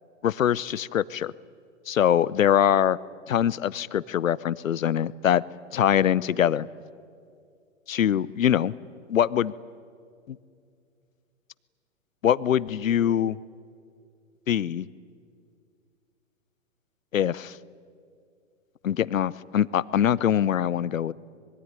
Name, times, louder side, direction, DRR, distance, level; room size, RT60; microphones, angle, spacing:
voice 1, 0.2-1.3 1.9-3.0 3.3-5.4 5.7-6.7 7.9-8.7 9.1-9.5 10.3-10.4 12.2-13.4 14.5-14.8 17.1-17.6 18.8-21.1, left 10 dB, 80° left, 20 dB, 0.8 m, -23 dB
25.5 x 21.5 x 9.7 m, 2.3 s
hypercardioid pair, 115°, 39 cm